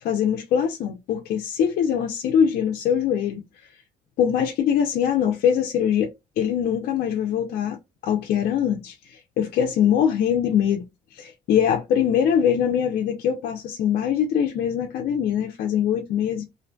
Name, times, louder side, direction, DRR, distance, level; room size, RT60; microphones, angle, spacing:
voice 1, 0.0-3.4 4.2-6.1 6.4-10.8 11.1-16.4, left 8 dB, 65° left, 0.5 m, -22 dB
2.5 x 2.2 x 2.5 m
cardioid pair, 110°, 17 cm